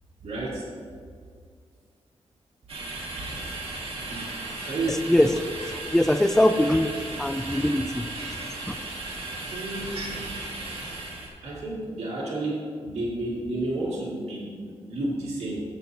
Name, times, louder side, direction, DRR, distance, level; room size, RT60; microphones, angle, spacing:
voice 1, 0.2-0.7 4.1-4.3 4.6-5.0 9.5-10.3 11.4-15.6, right 2 dB, 75° right, -6 dB, 2.1 m, -31 dB
sound 1, 2.7-11.3, right 2 dB, 60° right, 1.9 m, -35 dB
voice 2, 4.9-5.7 5.9-6.9 7.2-8.1 8.7-8.8, left 1 dB, 5° left, 9 dB, 0.3 m, -22 dB
12.5 x 7.8 x 2.8 m, 2.1 s
wide cardioid pair, 140°, 11 cm